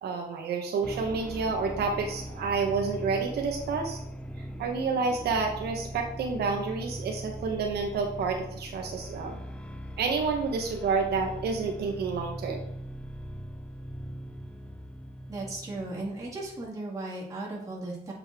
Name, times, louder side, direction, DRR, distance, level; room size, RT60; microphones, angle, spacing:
voice 1, 0.0-4.0 4.6-9.4 10.0-12.6, right 4 dB, 75° right, 2 dB, 1.0 m, -29 dB
sound 1, 0.8-16.7, equal, 5° left, 0.5 m, -40 dB
voice 2, 15.3-18.1, right 2 dB, 20° right, -4 dB, 2.1 m, -36 dB
7.3 x 5.4 x 3.6 m, 0.73 s
cardioid pair, 165°, 17 cm